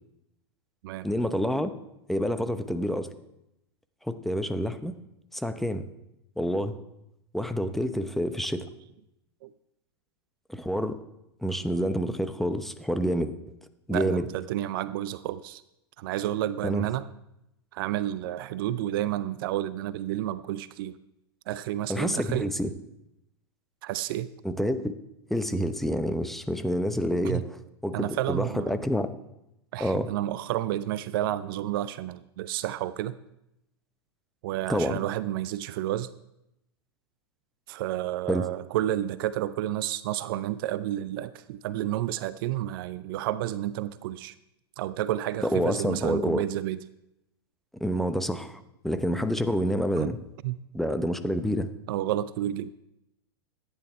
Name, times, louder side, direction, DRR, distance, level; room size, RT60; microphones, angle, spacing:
voice 1, 1.0-1.7 2.1-3.1 4.0-5.0 5.3-5.8 6.4-6.8 7.3-8.7 10.5-11.0 11.4-13.3 13.9-14.3 16.6-16.8 21.9-22.7 24.4-24.9 25.3-27.5 27.8-29.1 29.8-30.1 34.7-35.0 38.3-38.5 45.4-46.4 47.8-50.2 50.7-51.7, equal, ahead, 9 dB, 0.9 m, -28 dB
voice 2, 13.9-15.6 16.0-17.1 17.7-21.0 21.5-22.5 23.8-24.3 27.2-27.4 27.9-28.8 29.7-33.2 34.4-36.1 37.7-44.3 44.8-46.8 50.0-50.1 50.4-50.6 51.9-52.7, right 13 dB, 55° right, 16 dB, 0.5 m, -30 dB
14.5 x 9.8 x 4.4 m, 0.85 s
hypercardioid pair, 100°, 14 cm